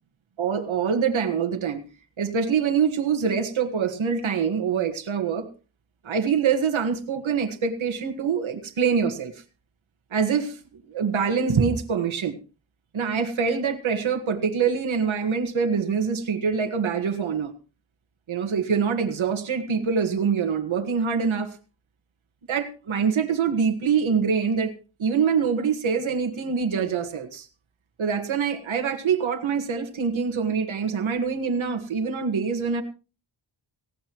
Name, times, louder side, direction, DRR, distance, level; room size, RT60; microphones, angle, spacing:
voice 1, 0.4-1.8 2.2-5.5 6.0-9.4 10.1-10.6 10.9-12.4 12.9-17.5 18.3-21.6 22.5-24.7 25.0-27.5 28.0-32.8, right 6 dB, 70° right, 6 dB, 1.8 m, -25 dB
18.0 x 17.0 x 3.1 m, 0.34 s
wide cardioid pair, 90°, 48 cm